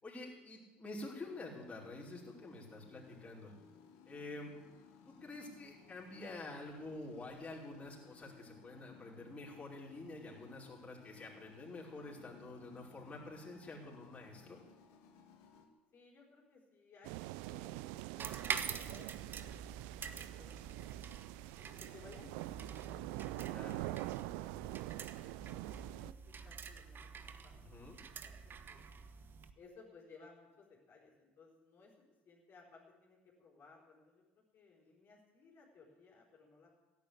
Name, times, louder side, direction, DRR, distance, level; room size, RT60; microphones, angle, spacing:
voice 1, 0.0-3.5 4.1-4.5 5.1-14.6 23.5-23.8 27.5-28.0, left 2 dB, 20° left, -4 dB, 5.2 m, -48 dB
sound 1, 1.2-15.7, left 6 dB, 60° left, 2.3 m, -61 dB
voice 2, 15.9-19.5 19.7-20.8 21.6-24.0 24.2-27.5 28.0-28.9 29.6-31.9 32.2-36.7, left 4 dB, 40° left, -2 dB, 4.7 m, -61 dB
sound 2, 17.0-26.1, right 19 dB, 65° right, 0.4 m, -45 dB
sound 3, 18.2-29.5, right 6 dB, 35° right, 1.3 m, -46 dB
16.5 x 9.5 x 8.5 m, 1.2 s
hypercardioid pair, 65°, 6 cm